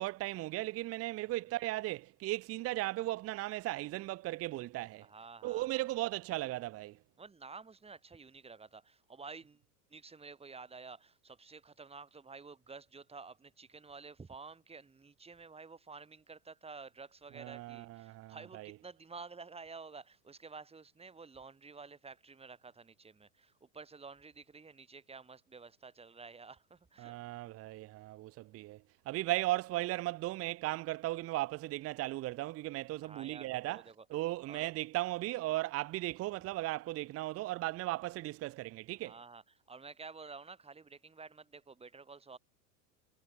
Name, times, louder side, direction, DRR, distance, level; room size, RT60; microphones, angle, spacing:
voice 1, 0.0-5.1 5.4-7.0 17.4-18.7 27.0-28.8 29.1-33.8 34.1-39.1, right 17 dB, 30° right, 1.0 m, -36 dB
voice 2, 5.0-6.0 7.2-9.6 9.9-27.2 33.0-34.1 34.5-34.7 39.0-42.4, right 4 dB, 15° right, 3.6 m, -51 dB
hypercardioid pair, 110°, 47 cm